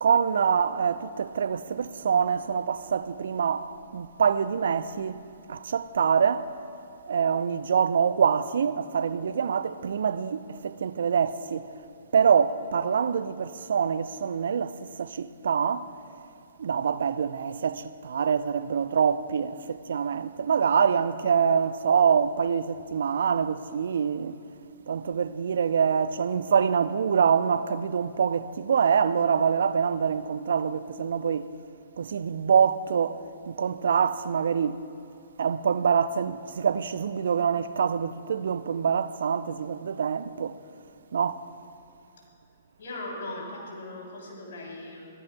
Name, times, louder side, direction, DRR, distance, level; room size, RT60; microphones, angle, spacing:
voice 1, 0.0-3.7 3.9-5.2 5.5-6.5 7.1-11.6 12.1-14.7 15.0-15.9 16.6-24.3 24.9-31.5 32.0-33.2 33.5-34.8 35.4-40.5 41.1-41.4, right 7 dB, 65° right, 0.5 m, -25 dB
voice 2, 42.8-45.1, left 2 dB, 60° left, 3.2 m, -38 dB
24.0 x 18.5 x 2.2 m
figure-of-eight pair, 115°, 0 cm